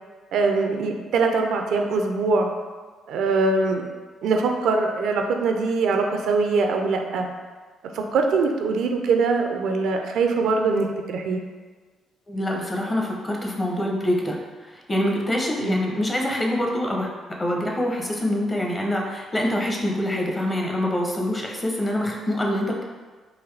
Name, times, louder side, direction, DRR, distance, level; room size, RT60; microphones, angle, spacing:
voice 1, 0.3-2.5 3.1-3.8 4.2-7.3 7.9-11.4 15.6-15.8, right 4 dB, 80° right, 4 dB, 0.4 m, -22 dB
voice 2, 12.3-14.4 14.7-22.8, left 1 dB, 25° left, 0 dB, 0.7 m, -25 dB
3.8 x 2.6 x 3.2 m, 1.4 s
cardioid pair, 90°, 0 cm